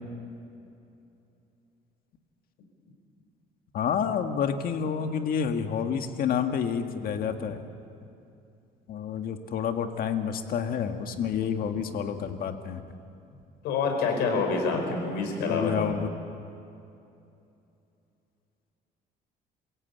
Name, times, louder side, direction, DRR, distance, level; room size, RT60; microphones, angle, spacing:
voice 1, 3.7-7.6 8.9-12.8 15.5-16.1, left 7 dB, 60° left, 6 dB, 1.8 m, -29 dB
voice 2, 13.6-15.8, left 4 dB, 85° left, 3 dB, 5.1 m, -27 dB
27.5 x 16.5 x 8.5 m, 2.6 s
cardioid pair, 110°, 17 cm